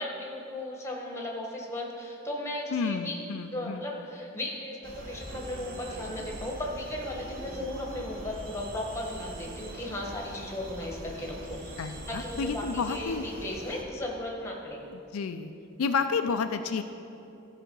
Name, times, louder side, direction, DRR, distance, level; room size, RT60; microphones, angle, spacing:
voice 1, 0.0-3.2 3.5-11.7 12.1-14.8, left 1 dB, 15° left, -1 dB, 1.3 m, -36 dB
voice 2, 2.7-3.8 11.8-13.3 15.1-15.5 15.8-16.8, left 5 dB, 80° left, 8 dB, 0.4 m, -30 dB
sound 1, 4.8-13.8, right 1 dB, 40° right, 1.0 m, -42 dB
14.0 x 5.0 x 5.4 m, 2.8 s
head